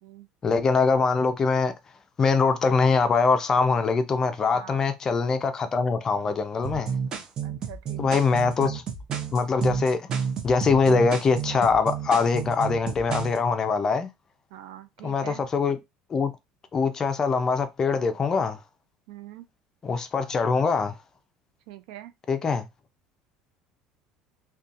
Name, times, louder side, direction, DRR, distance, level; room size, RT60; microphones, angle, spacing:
voice 1, 0.4-1.7 2.2-6.9 8.0-8.8 9.3-14.1 15.0-15.8 16.1-16.3 16.7-18.6 19.8-20.9 22.3-22.7, left 4 dB, 30° left, 0.4 m, -23 dB
sound 1, 6.6-13.4, right 7 dB, 40° right, 0.6 m, -31 dB
voice 2, 7.4-8.2 14.5-15.4 19.1-19.5 21.7-22.1, right 12 dB, 85° right, 0.4 m, -43 dB
2.7 x 2.2 x 2.5 m
cardioid pair, 125°, 2 cm